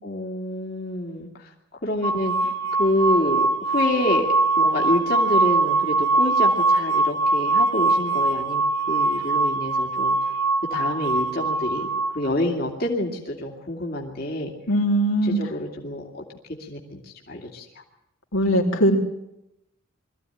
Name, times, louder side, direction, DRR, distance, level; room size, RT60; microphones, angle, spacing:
voice 1, 0.0-1.5 1.8-4.3 4.6-10.2 10.7-11.9 12.1-14.5 15.2-16.2 16.6-17.6, left 1 dB, 45° left, 0 dB, 2.4 m, -27 dB
sound 1, 2.0-12.1, right 3 dB, 75° right, 3.9 m, -22 dB
voice 2, 14.7-15.4 18.3-19.0, equal, 85° left, 1 dB, 3.7 m, -20 dB
22.5 x 14.5 x 10.0 m, 0.84 s
head